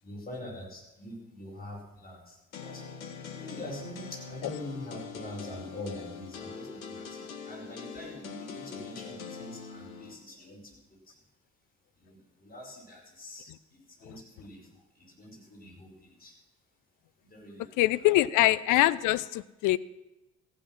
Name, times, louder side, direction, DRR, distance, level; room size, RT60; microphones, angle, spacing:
voice 1, 0.0-2.8 3.3-11.2 12.0-16.3 17.2-18.0, left 1 dB, 20° left, -2 dB, 5.3 m, -44 dB
sound 1, 2.5-10.1, left 6 dB, 80° left, 1.0 m, -43 dB
voice 2, 17.8-19.8, left 16 dB, 50° left, 18 dB, 0.6 m, -24 dB
14.5 x 9.5 x 5.6 m, 1.0 s
figure-of-eight pair, 45°, 41 cm